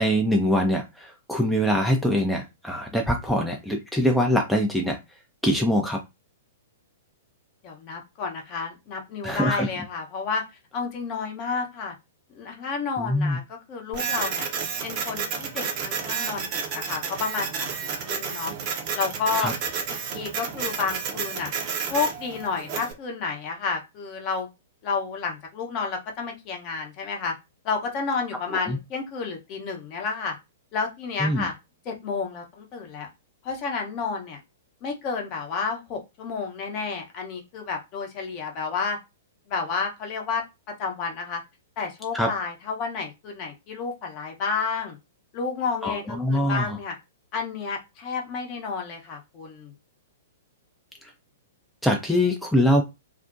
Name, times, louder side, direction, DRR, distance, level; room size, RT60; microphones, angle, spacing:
voice 1, 0.0-5.0 5.4-6.0 9.2-9.7 13.0-13.4 19.4-19.5 28.5-28.8 31.2-31.5 42.1-42.3 45.8-46.8 51.0-51.1 51.8-52.8, equal, ahead, 1 dB, 0.4 m, -23 dB
voice 2, 7.6-10.4 10.7-11.9 12.3-14.5 14.8-18.5 18.9-19.5 20.1-21.5 21.9-24.5 24.8-27.3 27.6-30.3 30.7-31.5 31.9-33.1 33.4-34.4 34.8-39.0 39.5-40.4 40.8-41.4 41.8-45.0 45.3-46.9 47.3-49.7, left 5 dB, 35° left, 2 dB, 0.7 m, -30 dB
Printer, 13.9-22.9, right 6 dB, 40° right, 0.6 m, -31 dB
2.5 x 2.1 x 2.4 m, 0.24 s
figure-of-eight pair, 110°, 0 cm